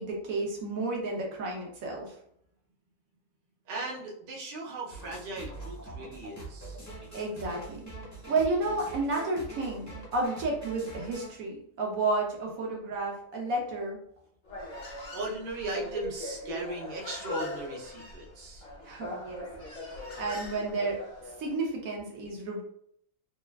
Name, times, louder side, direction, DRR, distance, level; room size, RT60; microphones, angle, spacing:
voice 1, 0.0-2.1 7.1-7.8 8.3-14.0 18.9-19.4 20.2-21.0 21.4-22.6, right 2 dB, 75° right, -1 dB, 1.1 m, -31 dB
voice 2, 3.7-6.8 15.1-18.7 20.6-20.7, right 2 dB, 55° right, -3 dB, 0.6 m, -37 dB
sound 1, 4.9-11.3, right 2 dB, 20° left, 0.6 m, -44 dB
Human voice, 14.4-21.5, left 2 dB, 60° left, 1.1 m, -41 dB
3.2 x 2.3 x 2.2 m, 0.69 s
omnidirectional pair, 1.5 m